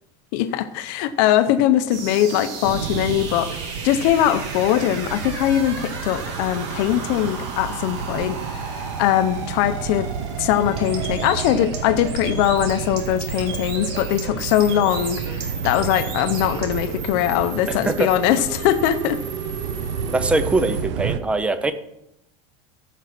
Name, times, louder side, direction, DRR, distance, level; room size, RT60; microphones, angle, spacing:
voice 1, 0.3-10.1 10.4-19.2, left 11 dB, 50° left, 9 dB, 0.7 m, -21 dB
sound 1, 1.9-20.8, right 5 dB, 45° right, 2.2 m, -35 dB
sound 2, 2.6-21.2, right 7 dB, 90° right, 0.9 m, -31 dB
Bird, 10.7-16.8, right 4 dB, 65° right, 2.7 m, -36 dB
voice 2, 17.7-18.1 20.1-21.7, right 2 dB, 5° right, 11 dB, 0.5 m, -22 dB
14.0 x 5.2 x 5.9 m, 0.82 s
cardioid pair, 175°, 15 cm